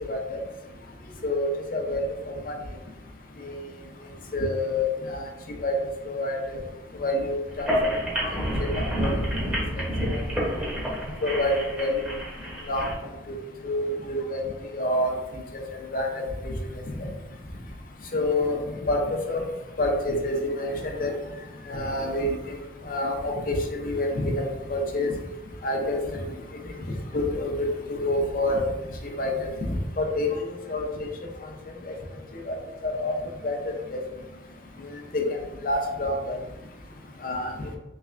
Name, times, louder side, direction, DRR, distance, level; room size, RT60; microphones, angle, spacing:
voice 1, 1.2-2.5 3.4-3.5 4.3-5.3 5.6-5.7 6.1-6.6 7.0-7.7 8.2-8.3 8.6-9.1 10.0-10.2 11.2-12.1 12.7-12.9 13.6-14.4 14.7-15.1 15.9-16.5 17.0-17.1 18.1-18.6 18.9-19.4 19.8-20.7 21.0-21.1 21.7-22.3 22.9-24.4 24.7-25.1 25.6-26.2 27.1-28.7 29.2-30.9 32.5-32.6 32.8-33.1 33.4-33.7 35.1-35.2 35.6-36.4 37.2-37.5, left 1 dB, 50° left, 2 dB, 0.6 m, -27 dB
sound 1, 7.5-12.9, equal, 10° right, 0.9 m, -28 dB
3.4 x 3.3 x 2.5 m, 1.1 s
head